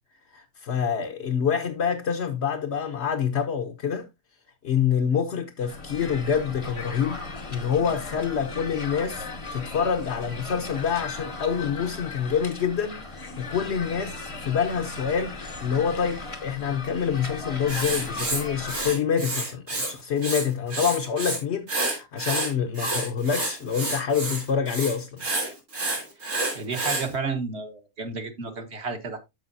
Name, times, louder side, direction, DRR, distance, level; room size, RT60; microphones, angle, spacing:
voice 1, 0.3-4.1 4.6-7.2 7.5-25.2, left 7 dB, 55° left, 1.0 m, -27 dB
sound 1, 5.6-18.9, left 3 dB, 25° left, 0.9 m, -37 dB
Writing, 17.7-19.9 20.2-21.4 21.7-27.1, right 2 dB, 85° right, 3.7 m, -29 dB
voice 2, 26.5-29.2, right 4 dB, 50° right, 1.4 m, -31 dB
13.0 x 5.0 x 2.6 m
omnidirectional pair, 1.5 m